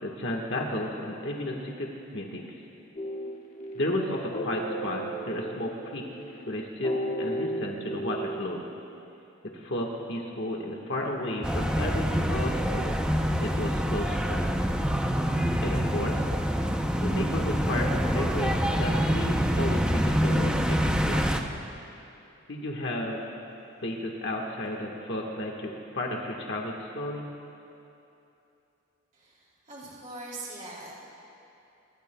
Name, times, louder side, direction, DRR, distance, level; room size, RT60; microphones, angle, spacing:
voice 1, 0.0-2.5 3.7-6.0 6.5-8.6 9.4-13.0 13.4-14.5 15.6-16.2 17.0-21.3 22.5-23.2 23.8-27.3, left 1 dB, 55° left, -1 dB, 1.5 m, -33 dB
sound 1, 3.0-8.5, right 1 dB, 35° left, 1.5 m, -34 dB
sound 2, 11.4-21.4, equal, 5° right, 0.6 m, -26 dB
voice 2, 29.1-30.9, right 2 dB, 35° right, -5 dB, 3.0 m, -42 dB
26.5 x 21.5 x 2.3 m, 2.8 s
head